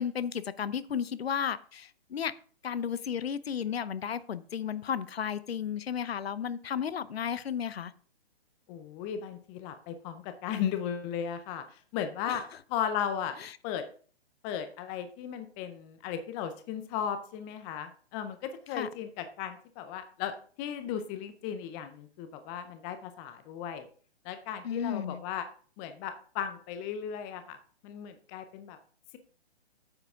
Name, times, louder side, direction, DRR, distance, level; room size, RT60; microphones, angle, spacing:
voice 1, 0.0-2.3 2.6-7.9 12.3-12.4 13.4-13.6 18.7-18.9 24.6-25.2, left 8 dB, 65° left, 15 dB, 0.8 m, -33 dB
voice 2, 8.7-11.6 11.9-12.4 12.7-13.3 13.6-13.8 14.4-23.9 24.2-25.5 25.8-27.6 27.8-28.8, left 8 dB, 15° left, 9 dB, 0.5 m, -36 dB
9.2 x 7.8 x 3.6 m, 0.43 s
figure-of-eight pair, 135°, 33 cm